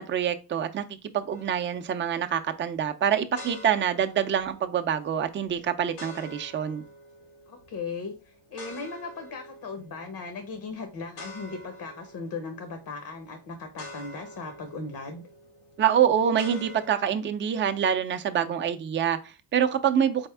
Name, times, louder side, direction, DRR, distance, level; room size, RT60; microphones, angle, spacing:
voice 1, 0.0-6.8 15.8-20.3, right 8 dB, 30° right, 0.5 m, -26 dB
sound 1, 1.3-16.9, left 1 dB, 85° left, 1.4 m, -48 dB
voice 2, 7.5-15.3, left 4 dB, 60° left, 1.0 m, -38 dB
4.0 x 3.5 x 3.4 m
cardioid pair, 95°, 40 cm